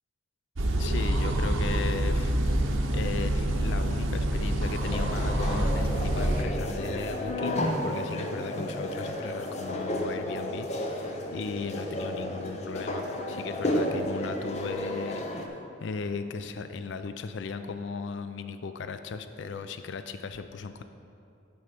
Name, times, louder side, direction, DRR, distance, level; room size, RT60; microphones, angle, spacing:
sound 1, 0.6-6.4, right 1 dB, 85° right, 0.8 m, -27 dB
voice 1, 0.8-20.8, left 4 dB, 65° left, 9 dB, 0.4 m, -37 dB
sound 2, 4.8-15.5, left 1 dB, 35° left, 0.7 m, -32 dB
11.0 x 4.8 x 5.0 m, 2.7 s
head